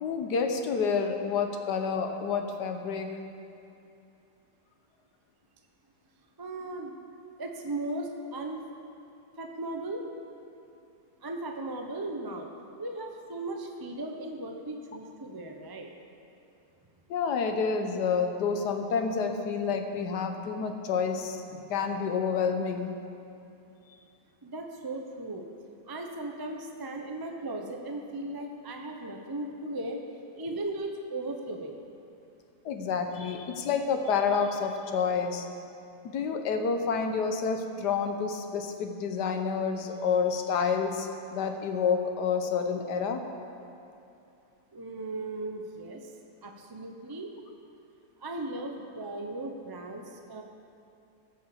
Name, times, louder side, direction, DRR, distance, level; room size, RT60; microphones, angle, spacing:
voice 1, 0.0-3.1 17.1-21.4 21.7-22.9 32.6-35.5 36.0-43.2, left 5 dB, 85° left, 5 dB, 1.5 m, -29 dB
voice 2, 6.4-6.9 7.4-8.6 9.4-10.0 11.2-12.5 12.8-15.9 24.4-25.4 25.9-30.0 30.3-31.8 44.7-46.1 46.4-47.3 48.2-50.4, right 2 dB, 25° right, 2 dB, 0.5 m, -37 dB
14.5 x 6.9 x 7.0 m, 2.6 s
omnidirectional pair, 1.7 m